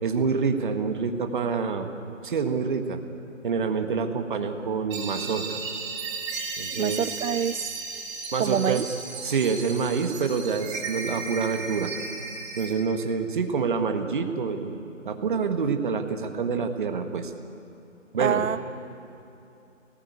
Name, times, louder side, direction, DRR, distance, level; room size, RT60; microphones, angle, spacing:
voice 1, 0.0-1.9 2.2-3.0 3.4-5.6 6.6-7.1 8.3-8.9 9.2-11.9 12.5-17.3 18.1-18.4, right 5 dB, 40° right, 6 dB, 1.6 m, -27 dB
Shining neural network, 4.9-12.7, right 4 dB, 20° right, 2.7 m, -35 dB
voice 2, 6.8-7.8 8.4-8.9 18.2-18.6, right 8 dB, 80° right, 15 dB, 0.6 m, -26 dB
24.0 x 19.0 x 8.2 m, 2.8 s
hypercardioid pair, 165°, 39 cm